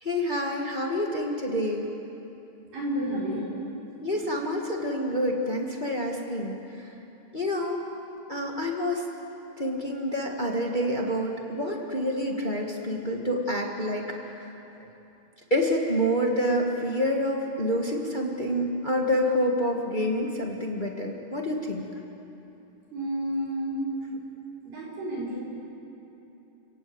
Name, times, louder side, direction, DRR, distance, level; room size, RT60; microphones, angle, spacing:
voice 1, 0.0-1.9 4.0-6.6 7.3-7.8 8.3-9.0 9.6-14.0 15.5-21.9, equal, 30° left, 0 dB, 0.9 m, -27 dB
voice 2, 2.7-3.4 22.9-23.9 24.6-25.4, equal, 70° right, -5 dB, 7.1 m, -30 dB
29.5 x 18.0 x 8.0 m, 3.0 s
omnidirectional pair, 4.1 m